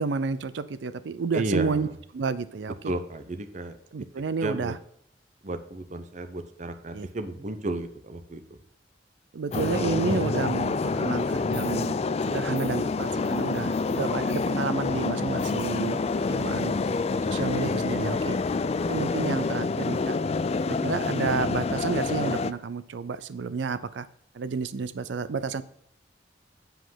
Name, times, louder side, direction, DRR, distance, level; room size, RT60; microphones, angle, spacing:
voice 1, 0.0-1.9 2.1-2.9 3.9-4.8 6.9-7.1 9.3-16.7 17.3-18.4 18.9-20.2 20.6-24.1 24.3-25.6, right 5 dB, 85° right, 14 dB, 0.5 m, -30 dB
voice 2, 1.3-1.8 2.8-3.7 4.4-4.7 5.4-8.4, right 2 dB, 40° right, 8 dB, 0.8 m, -32 dB
Sound Commuter train arrival in Hamburg-Harburg, 9.5-22.5, left 4 dB, 35° left, 0.4 m, -27 dB
7.8 x 5.1 x 5.7 m, 0.71 s
head